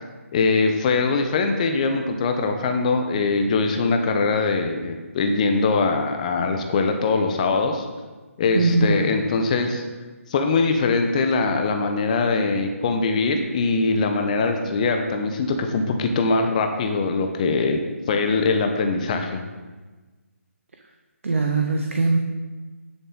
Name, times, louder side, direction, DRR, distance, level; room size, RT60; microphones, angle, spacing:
voice 1, 0.3-7.9 8.4-9.8 10.3-17.8 18.1-19.4, left 4 dB, 30° left, 5 dB, 0.9 m, -22 dB
voice 2, 8.5-9.1 21.2-22.2, right 3 dB, 60° right, 2 dB, 1.0 m, -21 dB
10.0 x 8.0 x 3.9 m, 1.3 s
figure-of-eight pair, 145°, 8 cm